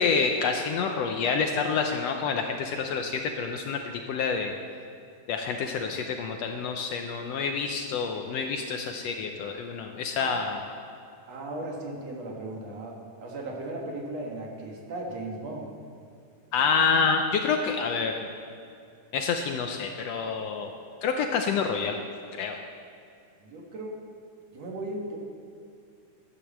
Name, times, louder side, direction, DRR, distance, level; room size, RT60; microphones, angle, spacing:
voice 1, 0.0-4.6 5.3-10.6 16.5-18.3 19.1-20.7 21.0-22.0 22.3-22.6, left 5 dB, 70° left, 4 dB, 1.7 m, -28 dB
voice 2, 11.3-15.7 23.4-24.0 24.5-25.2, right 2 dB, 60° right, -1 dB, 2.8 m, -36 dB
12.5 x 9.8 x 7.4 m, 2.3 s
omnidirectional pair, 3.4 m